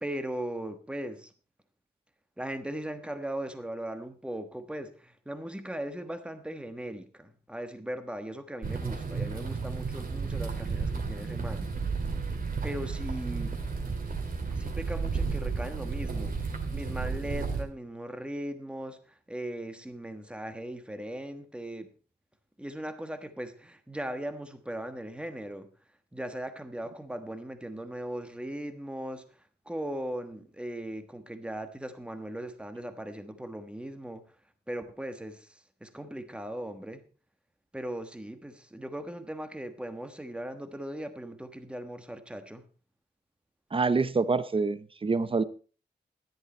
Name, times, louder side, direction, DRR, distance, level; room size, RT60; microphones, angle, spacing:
voice 1, 0.0-1.3 2.4-11.7 12.6-13.5 14.5-16.3 16.7-21.9 22.6-25.7 26.1-29.2 29.7-34.2 34.7-37.0 37.7-42.6, right 1 dB, 5° right, 8 dB, 1.2 m, -38 dB
sound 1, 8.6-17.6, right 4 dB, 55° right, 2.3 m, -32 dB
voice 2, 43.7-45.4, right 4 dB, 30° right, 14 dB, 0.7 m, -26 dB
13.5 x 11.0 x 4.3 m, 0.38 s
wide cardioid pair, 170°, 18 cm